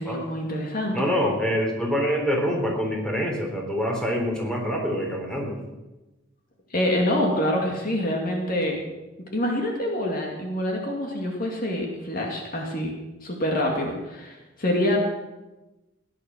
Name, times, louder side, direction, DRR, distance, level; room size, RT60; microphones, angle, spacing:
voice 1, 0.0-1.0 6.7-8.8 9.3-12.9 13.2-15.0, left 1 dB, 45° left, 1 dB, 2.3 m, -26 dB
voice 2, 0.9-5.6, equal, 5° left, 0 dB, 3.6 m, -25 dB
16.5 x 10.5 x 6.2 m, 1.1 s
head